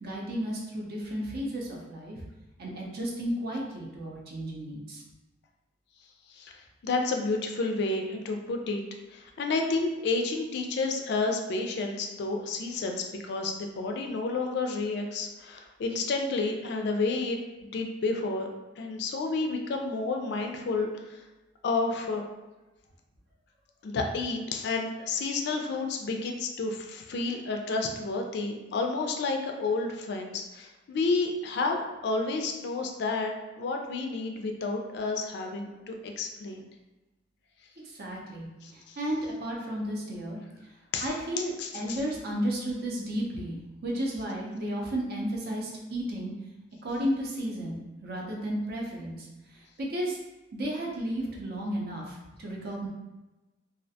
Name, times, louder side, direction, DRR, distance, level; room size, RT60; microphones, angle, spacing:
voice 1, 0.0-2.2 2.6-5.0 37.8-40.4 41.0-46.3 46.8-49.3 49.5-50.2 50.5-52.9, equal, 55° right, -2 dB, 0.5 m, -33 dB
voice 2, 6.3-8.8 9.1-18.5 18.8-20.9 21.6-22.2 23.8-36.6 38.6-39.0 40.9-41.1 41.6-42.0, left 3 dB, 60° left, 3 dB, 0.3 m, -30 dB
2.3 x 2.1 x 2.7 m, 1.1 s
head